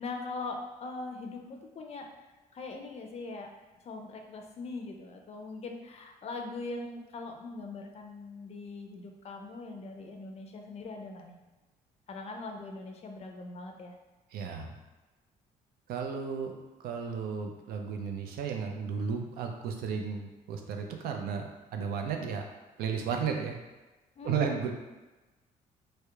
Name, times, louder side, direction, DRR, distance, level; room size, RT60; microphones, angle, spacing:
voice 1, 0.0-2.1 2.5-3.5 3.8-11.4 12.1-13.9 24.2-24.6, left 3 dB, 40° left, 3 dB, 0.4 m, -41 dB
voice 2, 14.3-14.7 15.9-16.5 16.8-22.4 22.8-23.6 24.2-24.7, right 6 dB, 75° right, 3 dB, 0.4 m, -33 dB
2.8 x 2.1 x 2.2 m, 1.1 s
supercardioid pair, 75°, 16 cm